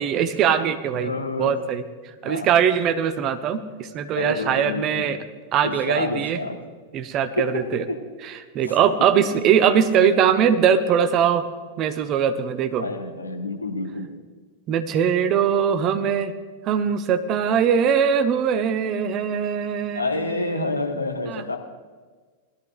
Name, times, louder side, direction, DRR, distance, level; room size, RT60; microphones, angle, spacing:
voice 1, 0.0-1.1 1.4-1.8 2.2-5.2 5.5-6.4 6.9-7.8 8.2-11.5 11.8-12.9 14.7-16.3 16.6-20.9 21.3-21.4, right 8 dB, 35° right, 10 dB, 0.8 m, -21 dB
voice 2, 0.9-1.6 2.2-2.5 4.2-5.1 5.6-6.7 7.4-8.0 8.6-8.8 12.8-14.1 19.9-21.6, left 2 dB, 80° left, 3 dB, 1.2 m, -28 dB
20.0 x 13.0 x 2.5 m, 1.5 s
figure-of-eight pair, 90°, 0 cm